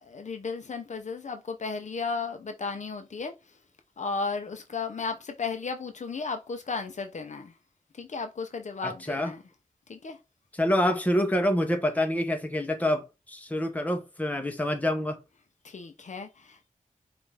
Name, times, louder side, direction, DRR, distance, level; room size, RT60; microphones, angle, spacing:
voice 1, 0.0-3.3 4.0-7.5 8.0-9.4 9.9-10.2 15.6-16.7, left 4 dB, 60° left, 0.6 m, -34 dB
voice 2, 8.8-9.3 10.6-15.2, left 1 dB, 10° left, 0.8 m, -27 dB
5.3 x 2.5 x 3.4 m
wide cardioid pair, 105°, 14 cm